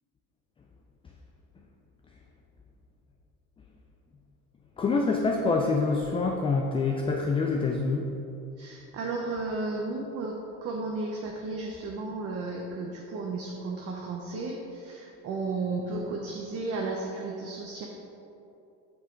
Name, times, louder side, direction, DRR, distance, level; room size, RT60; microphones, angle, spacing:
voice 1, 4.8-8.1, left 4 dB, 15° left, 1 dB, 0.4 m, -26 dB
voice 2, 8.6-10.3 10.6-17.9, right 3 dB, 40° right, 0 dB, 0.8 m, -33 dB
8.0 x 5.6 x 3.8 m, 2.8 s
supercardioid pair, 115°, 37 cm